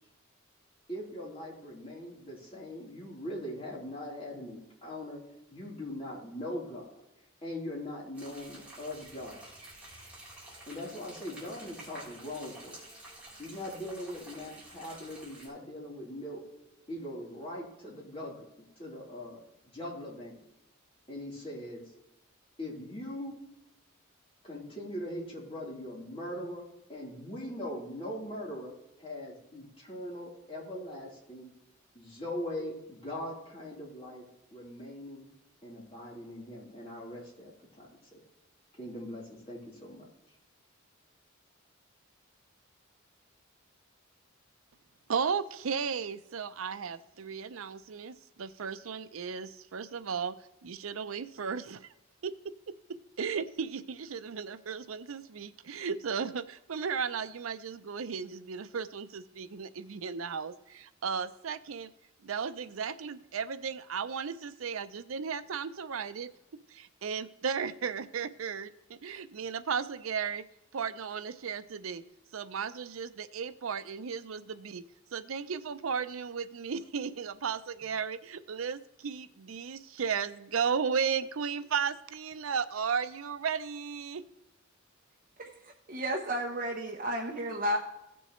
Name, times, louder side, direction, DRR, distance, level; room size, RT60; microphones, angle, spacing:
voice 1, 0.9-5.2 5.5-7.0 7.4-9.5 10.7-12.8 13.4-16.4 16.9-18.4 18.8-19.4 19.7-20.4 21.1-21.8 22.6-23.4 24.4-26.6 26.9-28.7 29.0-31.5 31.9-34.3 34.5-35.3 35.6-37.5 37.8-38.2 38.7-40.0, left 1 dB, 30° left, -5 dB, 3.7 m, -41 dB
sound 1, 8.1-15.5, right 1 dB, 5° right, 3.7 m, -50 dB
voice 2, 45.1-50.4 50.6-51.9 52.2-61.9 62.2-66.3 66.7-70.4 70.7-72.0 72.3-74.8 75.1-84.3, right 6 dB, 85° right, 13 dB, 0.5 m, -35 dB
voice 3, 85.9-87.8, equal, 40° right, 0 dB, 0.9 m, -32 dB
16.0 x 6.9 x 3.2 m, 0.91 s
head